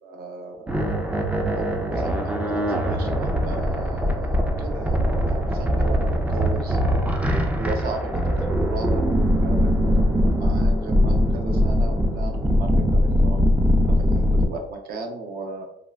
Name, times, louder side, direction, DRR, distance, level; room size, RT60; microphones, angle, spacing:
voice 1, 0.0-0.7 1.5-6.8 7.6-13.4 13.9-15.7, right 3 dB, 60° right, 3 dB, 0.6 m, -36 dB
sound 1, 0.7-14.5, equal, 10° right, 0.3 m, -21 dB
3.5 x 2.3 x 2.2 m, 0.82 s
cardioid pair, 110°, 17 cm